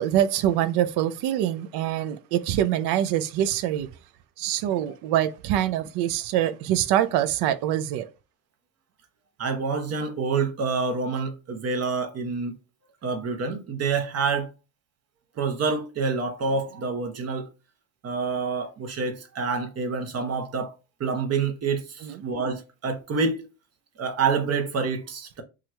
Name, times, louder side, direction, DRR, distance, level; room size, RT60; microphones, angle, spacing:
voice 1, 0.0-3.9 4.4-8.1 22.0-22.2, right 11 dB, 70° right, 0.5 m, -24 dB
voice 2, 9.4-12.5 13.0-14.5 15.4-17.5 18.0-20.7 21.0-23.5 24.0-25.4, right 4 dB, 35° right, 0.7 m, -27 dB
2.8 x 2.4 x 3.1 m
cardioid pair, 115°, 41 cm